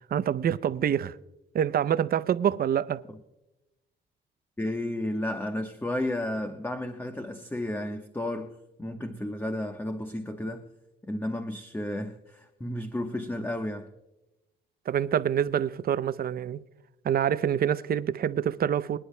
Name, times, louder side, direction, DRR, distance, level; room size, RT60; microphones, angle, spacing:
voice 1, 0.1-1.2 1.5-3.0 14.9-16.6 17.0-19.0, right 9 dB, 50° right, 0.6 m, -26 dB
voice 2, 4.6-10.6 11.1-13.9, left 1 dB, 10° left, 1.0 m, -32 dB
25.5 x 10.0 x 2.2 m
cardioid pair, 90°, 20 cm